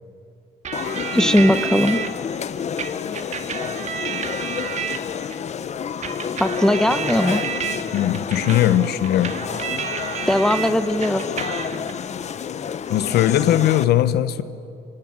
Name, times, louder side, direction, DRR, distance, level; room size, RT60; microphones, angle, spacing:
sound 1, 0.6-2.1 2.8-5.4 6.0-10.7 11.0-11.9, right 7 dB, 45° right, 2.1 m, -30 dB
sound 2, 0.7-13.9, left 7 dB, 40° left, 1.1 m, -29 dB
voice 1, 1.1-2.0 6.4-7.4 10.3-11.2, left 1 dB, 5° left, 1.2 m, -18 dB
voice 2, 7.9-9.4 12.9-14.4, left 12 dB, 75° left, 1.2 m, -19 dB
25.5 x 25.0 x 8.9 m
cardioid pair, 110°, 17 cm